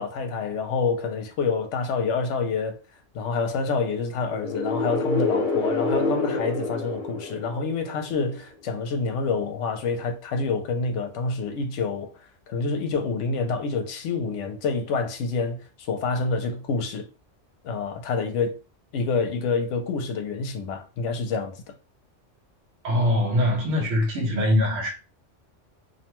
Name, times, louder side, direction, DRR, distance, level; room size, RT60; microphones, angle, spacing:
voice 1, 0.0-2.8 3.1-17.0 17.6-18.6 18.9-21.6, left 4 dB, 80° left, 0.9 m, -27 dB
sound 1, 4.3-8.1, left 3 dB, 45° left, 0.9 m, -27 dB
voice 2, 22.8-24.9, left 1 dB, 75° right, 1.0 m, -22 dB
2.6 x 2.2 x 2.9 m
omnidirectional pair, 1.3 m